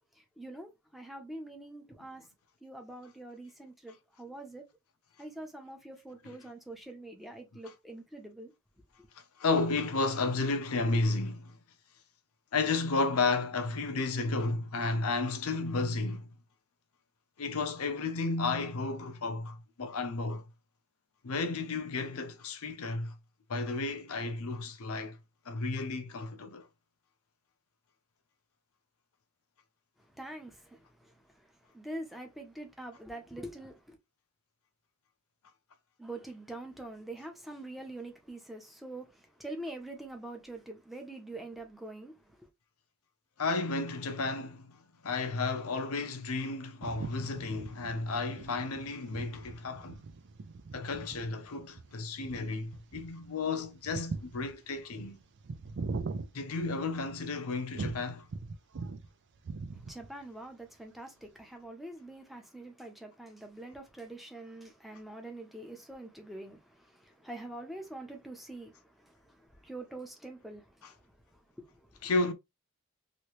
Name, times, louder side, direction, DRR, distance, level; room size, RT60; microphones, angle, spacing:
voice 1, 0.4-2.3 2.6-4.6 5.2-8.5 30.1-31.1 31.7-34.0 36.0-39.1 39.4-42.1 42.4-42.5 59.9-68.7 69.0-70.9 71.6-71.9, right 1 dB, ahead, 0.8 m, -45 dB
voice 2, 9.4-11.6 12.5-16.3 17.4-20.4 21.2-23.1 23.5-25.2 25.5-26.7 43.4-44.8 45.0-50.0 50.7-55.2 56.3-58.3 70.8-70.9 72.0-72.3, left 3 dB, 80° left, 0.6 m, -32 dB
sound 1, 46.8-57.2 57.7-59.1 59.3-60.2, right 4 dB, 55° right, 0.5 m, -41 dB
3.1 x 2.7 x 3.0 m
head